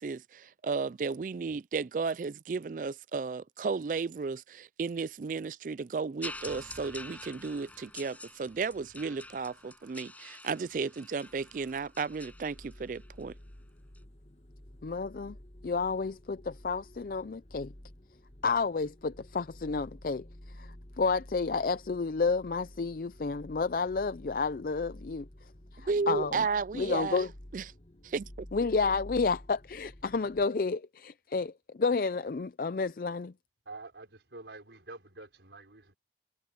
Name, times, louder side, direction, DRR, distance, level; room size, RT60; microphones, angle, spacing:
voice 1, 0.0-13.3 25.9-27.2 27.5-27.6 28.0-28.5, right 4 dB, 45° right, 0.4 m, -34 dB
sound 1, 6.2-13.2 14.0-14.1, left 2 dB, 10° left, 7.9 m, -47 dB
sound 2, 11.3-30.5, left 1 dB, 35° left, 1.5 m, -51 dB
voice 2, 14.8-15.4 15.6-17.7 18.4-20.2 20.6-20.7 21.0-25.3 25.8-26.5 26.7-27.3 28.5-31.5 31.8-33.3, left 4 dB, 55° left, 0.4 m, -30 dB
voice 3, 33.7-35.9, right 3 dB, 90° right, 5.5 m, -47 dB
head